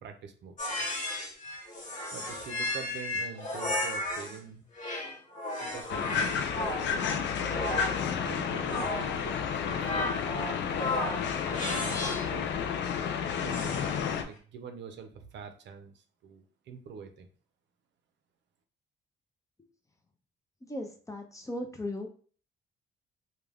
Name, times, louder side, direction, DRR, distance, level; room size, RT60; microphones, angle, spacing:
voice 1, 0.0-0.6 2.1-4.7 5.6-7.1 8.0-10.4 11.5-12.5 13.2-14.0 14.2-17.3, right 6 dB, 65° right, 7 dB, 0.5 m, -45 dB
sound 1, 0.6-4.4 4.8-12.4 13.5-14.1, left 1 dB, 40° left, 0.9 m, -35 dB
sound 2, 5.9-14.2, left 7 dB, 65° left, 0.4 m, -31 dB
voice 2, 20.6-22.1, left 1 dB, 15° left, 4 dB, 0.5 m, -37 dB
2.4 x 2.2 x 3.3 m, 0.42 s
cardioid pair, 90°, 20 cm